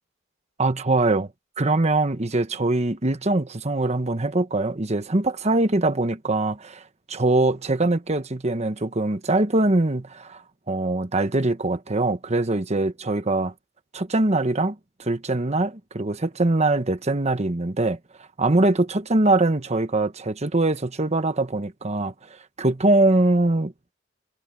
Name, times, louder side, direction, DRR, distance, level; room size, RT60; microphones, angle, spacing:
voice 1, 0.6-1.3 1.6-6.8 7.1-10.4 10.7-13.5 13.9-18.0 18.4-22.1 22.6-23.9, right 2 dB, 35° right, 1.2 m, -22 dB
head